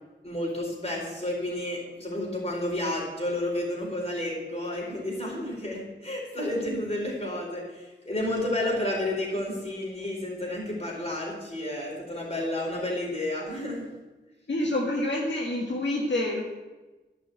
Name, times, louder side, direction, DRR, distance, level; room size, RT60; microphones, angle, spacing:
voice 1, 0.2-13.9, left 1 dB, 35° left, -3 dB, 4.5 m, -31 dB
voice 2, 14.5-16.4, left 1 dB, 75° left, -2 dB, 1.8 m, -27 dB
11.5 x 6.0 x 7.9 m, 1.2 s
wide cardioid pair, 80°, 19 cm